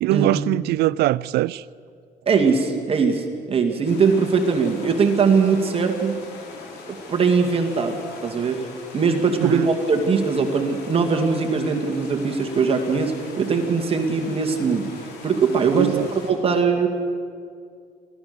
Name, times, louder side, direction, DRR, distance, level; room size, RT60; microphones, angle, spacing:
voice 1, 0.0-1.6 9.4-9.7 15.7-16.1, right 17 dB, 70° right, 0.4 m, -22 dB
voice 2, 2.3-6.2 6.9-8.0 8.2-8.6 8.9-14.9 15.2-15.9 16.3-16.9, right 5 dB, 35° right, 2.2 m, -21 dB
sound 1, 3.8-16.3, left 4 dB, 85° left, 4.2 m, -41 dB
24.0 x 16.0 x 6.8 m
cardioid pair, 110°, 17 cm